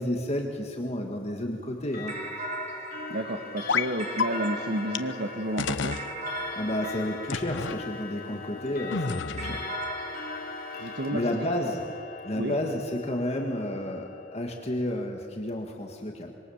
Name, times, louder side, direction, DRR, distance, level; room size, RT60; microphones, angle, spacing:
voice 1, 0.0-2.2 6.5-9.7 11.1-11.8 12.2-16.3, left 1 dB, 35° left, 2 dB, 1.7 m, -31 dB
Clock, 1.8-14.9, left 4 dB, 50° left, 3.2 m, -41 dB
sound 1, 2.1-8.7 9.4-12.1, right 1 dB, 35° right, 2.8 m, -39 dB
voice 2, 3.1-6.0 10.8-11.2 12.3-12.6, right 1 dB, 60° right, 6 dB, 1.4 m, -31 dB
sound 2, 3.7-3.9 4.2-4.3 4.9-5.0 5.6-6.1 7.3-7.8 8.9-9.6, left 5 dB, 70° left, 0.9 m, -29 dB
26.0 x 23.5 x 7.1 m, 2.4 s
head